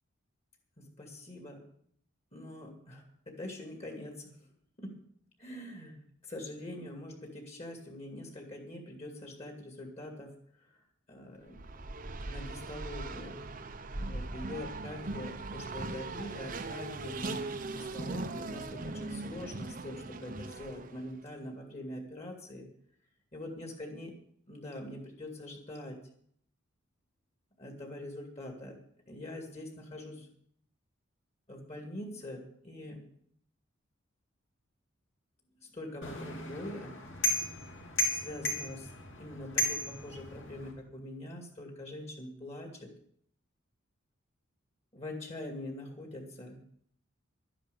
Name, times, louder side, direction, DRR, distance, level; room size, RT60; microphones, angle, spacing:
voice 1, 0.8-1.6 2.3-4.4 4.8-5.0 5.4-6.0 6.2-10.8 11.1-11.6 12.3-13.4 14.0-22.7 23.3-24.1 24.5-26.0 27.6-28.8 29.1-30.3 31.5-33.0 35.6-37.0 38.1-38.9 39.2-42.9 44.9-46.6, left 1 dB, 30° left, 3 dB, 2.3 m, -44 dB
Race car auto racing, 11.5-21.1, right 3 dB, 40° right, 0.8 m, -40 dB
sound 1, 36.0-40.7, left 1 dB, 65° left, 3.4 m, -35 dB
12.5 x 10.0 x 7.0 m, 0.64 s
head